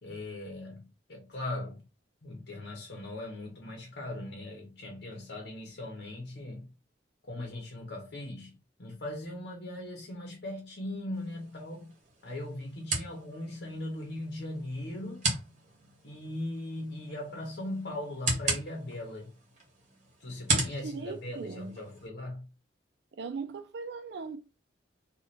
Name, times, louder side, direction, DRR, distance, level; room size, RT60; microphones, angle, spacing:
voice 1, 0.0-1.8 2.2-6.7 7.3-11.9 12.2-15.3 16.0-19.3 20.2-22.5, left 1 dB, 60° left, 0.9 m, -39 dB
sound 1, 11.1-22.1, right 2 dB, 40° right, 1.5 m, -37 dB
voice 2, 20.5-21.8 23.1-24.4, right 4 dB, 65° right, 0.4 m, -39 dB
3.2 x 2.4 x 4.1 m
head